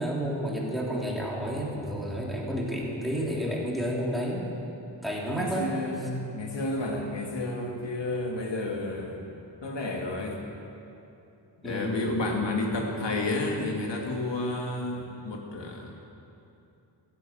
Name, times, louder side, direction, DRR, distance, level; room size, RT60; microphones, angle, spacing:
voice 1, 0.0-4.5 5.0-5.7 11.6-12.1 12.4-12.6, equal, ahead, -3 dB, 3.2 m, -31 dB
voice 2, 5.4-9.2 9.6-10.4 11.6-15.9, left 2 dB, 70° left, 0 dB, 2.4 m, -31 dB
16.0 x 10.5 x 7.6 m, 2.8 s
wide cardioid pair, 95°, 44 cm